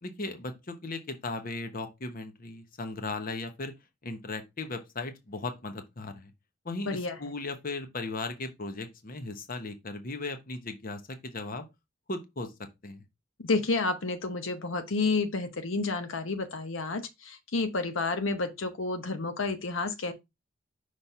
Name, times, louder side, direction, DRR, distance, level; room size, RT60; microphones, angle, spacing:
voice 1, 0.0-3.7 4.0-6.3 6.6-11.6 12.1-12.5 12.8-13.0, left 3 dB, 45° left, 0.9 m, -37 dB
voice 2, 6.8-7.2 13.4-20.1, left 3 dB, 80° left, 0.9 m, -30 dB
5.7 x 3.2 x 5.4 m
head